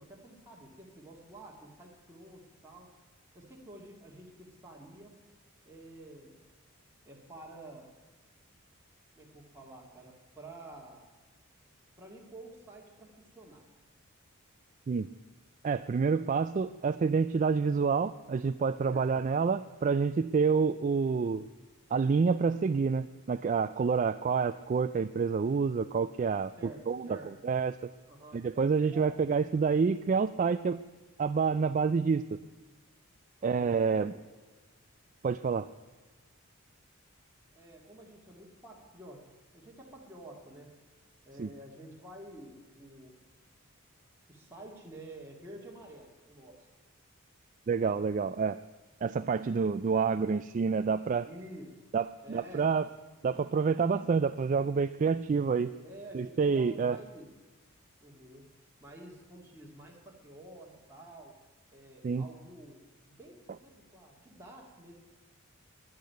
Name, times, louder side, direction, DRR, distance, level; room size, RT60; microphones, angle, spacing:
voice 1, 0.0-2.9 3.3-5.2 5.6-6.5 7.1-7.9 9.1-11.1 12.0-13.7 18.9-19.1 26.6-27.3 28.1-28.4 28.9-29.2 33.4-34.2 37.5-40.8 41.3-43.2 44.3-46.7 51.3-51.8 52.2-52.7 55.8-57.3 58.0-58.5 58.8-61.4 61.7-64.9, right 1 dB, 10° right, -3 dB, 2.0 m, -50 dB
voice 2, 15.6-21.5 21.9-27.9 28.3-30.8 31.2-32.4 33.4-34.1 35.2-35.7 41.4-41.5 47.7-48.6 49.0-51.3 51.9-52.9 53.2-55.7 56.1-57.0 62.0-62.2, right 5 dB, 35° right, 11 dB, 0.3 m, -28 dB
10.5 x 10.5 x 9.3 m, 1.3 s
head